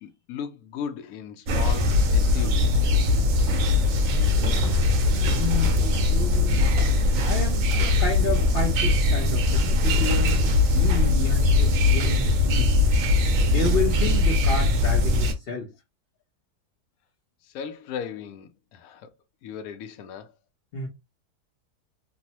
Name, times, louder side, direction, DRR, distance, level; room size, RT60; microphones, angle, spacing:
voice 1, 0.0-3.1 17.4-19.1 19.4-20.3, left 7 dB, 70° left, 1.0 m, -37 dB
sound 1, 1.5-15.3, left 2 dB, 65° right, 1.0 m, -21 dB
voice 2, 4.1-4.8 5.1-6.7 7.0-12.7 13.3-15.7 20.7-20.9, left 5 dB, 50° left, 0.8 m, -31 dB
3.0 x 2.0 x 2.8 m
omnidirectional pair, 1.7 m